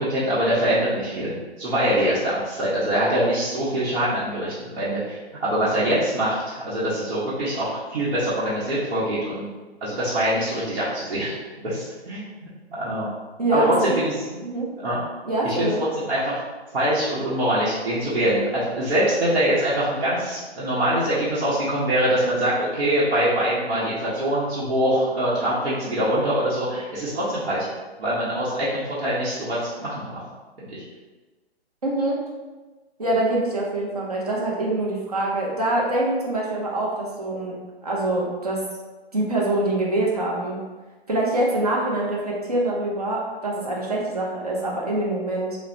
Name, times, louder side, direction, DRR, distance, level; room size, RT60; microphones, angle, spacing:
voice 1, 0.0-9.5 9.8-11.4 11.6-13.1 13.5-14.4 14.8-15.0 15.4-15.7 15.9-16.4 16.7-27.7 28.0-30.2 30.6-30.8, right 1 dB, 65° right, -11 dB, 0.9 m, -24 dB
voice 2, 13.4-14.0 14.4-14.7 15.2-15.8 31.8-32.2 33.0-37.6 37.8-38.6 39.1-40.6 41.1-45.6, right 2 dB, 35° right, -3 dB, 0.5 m, -24 dB
3.0 x 2.0 x 2.5 m, 1.3 s
hypercardioid pair, 170°, 32 cm